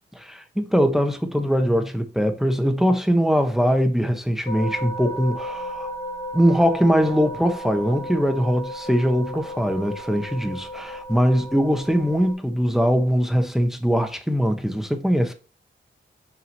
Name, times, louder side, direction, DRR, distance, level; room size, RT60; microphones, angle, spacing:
voice 1, 0.2-5.9 6.3-15.3, equal, ahead, 1.0 m, -21 dB
sound 1, 4.5-12.3, equal, 55° left, 2.3 m, -34 dB
6.0 x 5.9 x 2.9 m
wide cardioid pair, 130°, 20 cm